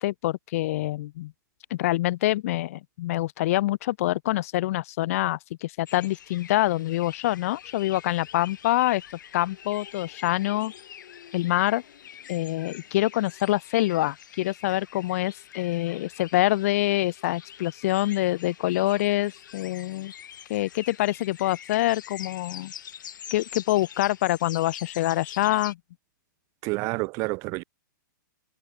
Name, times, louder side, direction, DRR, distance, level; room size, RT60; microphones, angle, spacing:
voice 1, 0.0-1.3 1.7-9.0 9.3-10.7 11.3-11.8 12.3-20.1 20.5-22.7 23.3-25.8, left 16 dB, 45° left, 0.9 m, -26 dB
sound 1, 5.9-25.7, left 9 dB, 70° left, 3.3 m, -45 dB
voice 2, 26.6-27.6, right 27 dB, 30° right, 0.8 m, -29 dB
hypercardioid pair, 155°, 11 cm